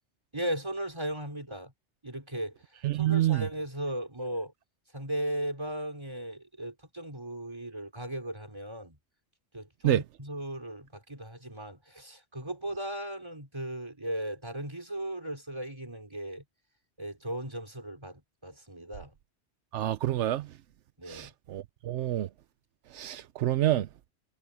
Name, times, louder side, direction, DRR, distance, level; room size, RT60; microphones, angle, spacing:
voice 1, 0.3-1.7 2.0-2.6 2.9-4.5 4.9-9.0 9.5-16.4 17.0-19.1 21.0-21.3, right 1 dB, 25° right, 3.6 m, -37 dB
voice 2, 2.8-3.5 9.8-10.0 19.7-20.5 21.1-22.3 22.9-23.9, right 13 dB, 85° right, 0.9 m, -27 dB
omnidirectional pair, 1.2 m